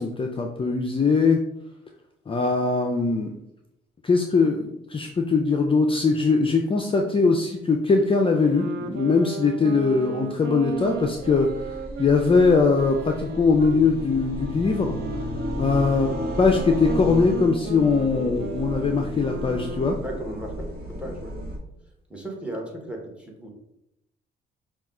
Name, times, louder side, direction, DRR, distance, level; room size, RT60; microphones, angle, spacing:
voice 1, 0.0-1.4 2.3-3.3 4.0-15.2 15.6-16.1 16.4-20.0, left 4 dB, 25° left, 3 dB, 0.5 m, -21 dB
Wind instrument woodwind instrument, 8.0-13.9 14.6-20.0, right 5 dB, 65° right, 0.5 m, -35 dB
sound 1, 10.7-21.6, equal, 50° right, 1.2 m, -34 dB
voice 2, 20.0-21.3 22.1-23.5, right 1 dB, 5° right, 1 dB, 1.2 m, -36 dB
5.6 x 2.4 x 3.7 m, 0.83 s
cardioid pair, 90°, 20 cm